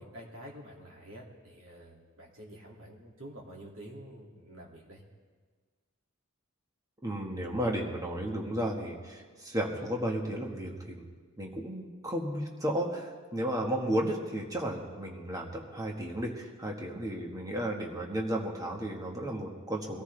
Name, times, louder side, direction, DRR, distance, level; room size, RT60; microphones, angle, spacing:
voice 1, 0.0-5.0, equal, 70° right, -2 dB, 2.5 m, -48 dB
voice 2, 7.0-11.1 11.4-20.0, right 1 dB, 15° right, 0 dB, 1.6 m, -33 dB
22.5 x 14.0 x 3.4 m, 1.5 s
head